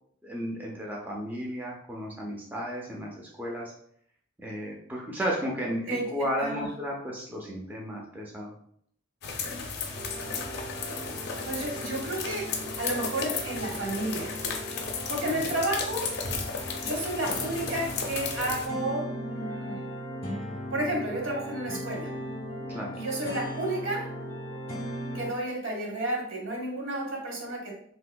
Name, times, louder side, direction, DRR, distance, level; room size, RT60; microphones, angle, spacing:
voice 1, 0.2-3.7 4.4-8.5 15.2-15.4 22.7-22.9, equal, 10° right, -3 dB, 0.4 m, -33 dB
sound 1, 9.2-18.7, left 5 dB, 55° left, 0.5 m, -34 dB
sound 2, 9.9-25.3, equal, 30° left, 0.8 m, -38 dB
voice 2, 11.4-14.4 15.1-16.2 16.8-19.8 20.7-22.1 22.9-24.1 25.1-27.7, right 1 dB, 75° right, -1 dB, 1.1 m, -31 dB
3.4 x 2.8 x 2.2 m, 0.66 s
head